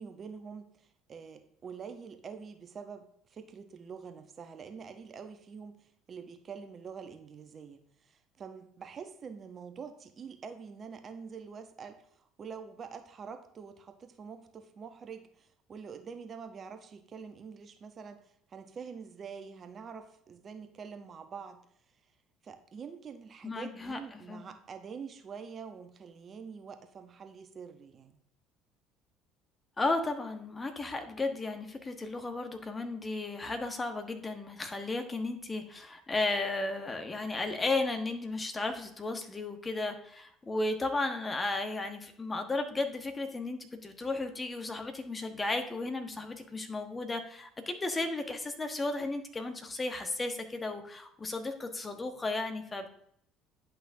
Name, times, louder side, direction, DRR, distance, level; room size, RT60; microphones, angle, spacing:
voice 1, 0.0-21.6 21.9-22.1 22.4-28.2, right 6 dB, 40° right, 8 dB, 0.8 m, -46 dB
voice 2, 23.4-24.0 24.3-24.5 29.8-52.9, left 2 dB, 25° left, 6 dB, 1.2 m, -34 dB
10.0 x 5.8 x 2.7 m, 0.68 s
hypercardioid pair, 60°, 0 cm